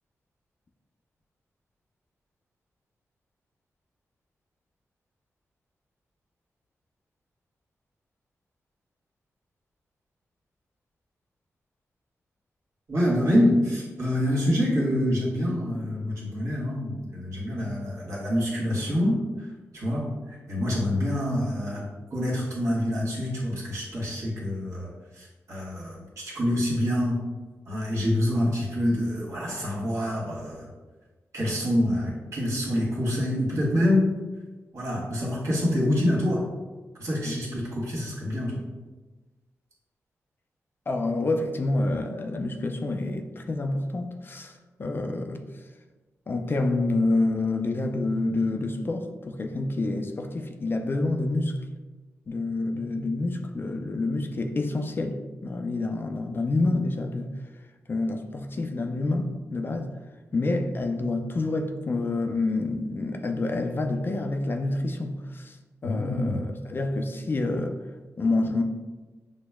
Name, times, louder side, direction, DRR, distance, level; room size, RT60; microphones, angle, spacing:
voice 1, 12.9-19.5 19.7-21.9 22.1-27.2 27.7-30.7 31.3-34.1 34.7-36.4 37.0-38.6 65.8-66.4, left 1 dB, 70° right, 1.4 m, -26 dB
voice 2, 40.9-45.4 46.3-51.6 52.3-57.3 57.9-59.9 60.3-65.6 65.8-67.8 68.2-68.6, left 2 dB, 40° left, 0.4 m, -28 dB
6.1 x 2.0 x 2.2 m
cardioid pair, 70°, 5 cm